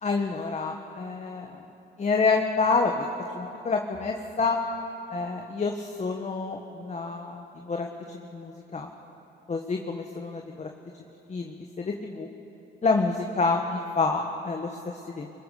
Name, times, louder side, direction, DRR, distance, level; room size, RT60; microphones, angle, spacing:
voice 1, 0.0-1.6 2.0-3.1 3.3-4.6 5.1-8.9 9.5-10.7 11.3-12.3 12.8-15.3, left 4 dB, 35° left, 2 dB, 1.6 m, -28 dB
24.0 x 22.0 x 6.7 m, 2.9 s
cardioid pair, 90°, 20 cm